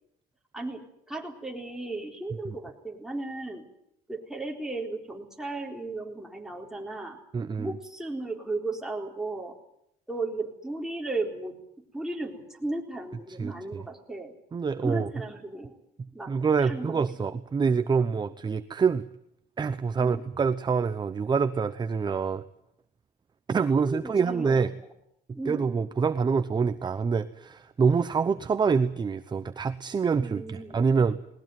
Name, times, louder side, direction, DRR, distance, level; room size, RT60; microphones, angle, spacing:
voice 1, 1.1-3.7 4.1-7.2 7.6-9.5 10.1-11.6 11.9-14.3 14.8-15.8 16.1-16.3 16.6-17.0 20.0-20.3 23.8-24.9 25.3-25.7 30.2-30.8, right 2 dB, 5° right, 0 dB, 4.0 m, -35 dB
voice 2, 7.3-7.7 13.4-13.5 14.5-15.1 16.3-19.0 19.6-22.4 23.5-24.7 25.5-31.2, right 5 dB, 25° right, 12 dB, 0.8 m, -26 dB
20.0 x 19.0 x 9.4 m, 0.77 s
cardioid pair, 110°, 17 cm